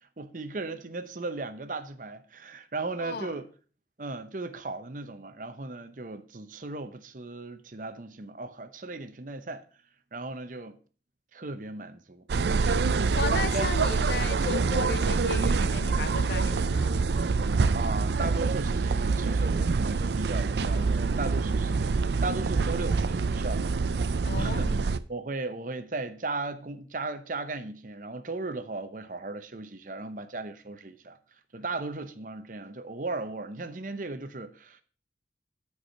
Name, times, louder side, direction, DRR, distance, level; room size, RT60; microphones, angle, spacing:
voice 1, 0.2-3.5 4.0-9.6 10.1-10.8 11.3-13.2 13.5-13.9 14.4-14.8 17.7-23.6 24.3-24.8 25.1-31.2 31.5-34.8, right 3 dB, 50° right, 0.8 m, -36 dB
voice 2, 3.0-3.3 13.2-17.0 24.3-24.8, left 5 dB, 65° left, 0.5 m, -35 dB
sound 1, 12.3-25.0, right 4 dB, 75° right, 0.5 m, -26 dB
9.3 x 4.8 x 5.6 m
head